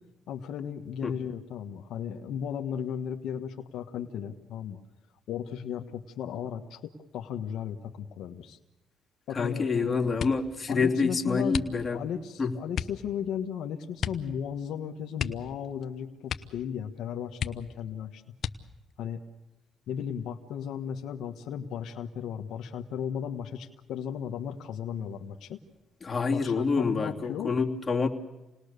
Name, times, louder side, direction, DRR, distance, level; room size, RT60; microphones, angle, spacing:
voice 1, 0.3-4.8 5.3-8.6 9.3-10.1 10.7-18.2 19.0-19.2 19.9-25.6 26.3-27.5, left 8 dB, 80° left, 4 dB, 1.5 m, -35 dB
voice 2, 9.3-12.0 12.4-12.5 26.0-28.1, left 4 dB, 30° left, 1 dB, 3.0 m, -27 dB
sound 1, 10.1-10.6 11.5-12.1 12.7-13.0 14.0-14.3 14.6-14.7 15.1-15.9 16.2-16.7 17.0-17.1 17.4-17.9 18.4-18.9 19.6-20.2 20.6-21.0, left 8 dB, 60° left, 1.2 m, -35 dB
28.5 x 20.0 x 6.8 m, 1.0 s
cardioid pair, 90°, 0 cm